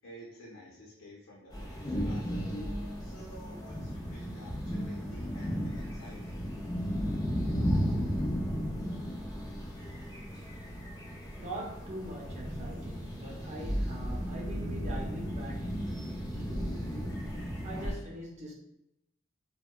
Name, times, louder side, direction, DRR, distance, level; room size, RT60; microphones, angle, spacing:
voice 1, 0.0-2.6 3.0-6.4, equal, 90° left, -5 dB, 0.7 m, -51 dB
sound 1, 1.5-17.9, equal, 20° left, 0.4 m, -34 dB
voice 2, 11.4-15.8 16.2-18.5, right 1 dB, 35° right, -1 dB, 0.6 m, -43 dB
2.8 x 2.1 x 2.2 m, 0.82 s
head